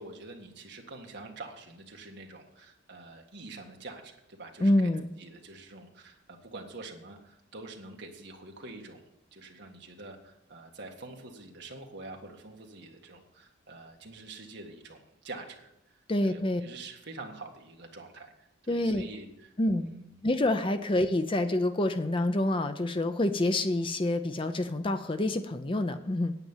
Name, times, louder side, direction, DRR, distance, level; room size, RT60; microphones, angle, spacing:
voice 1, 0.0-4.9 5.2-9.0 9.3-20.2 20.8-20.9, right 2 dB, 50° right, 2 dB, 1.8 m, -46 dB
voice 2, 4.6-5.1 16.1-16.6 18.7-19.0 19.6-19.9 20.2-26.3, left 1 dB, 25° left, 9 dB, 0.5 m, -27 dB
9.1 x 9.0 x 7.3 m, 0.84 s
head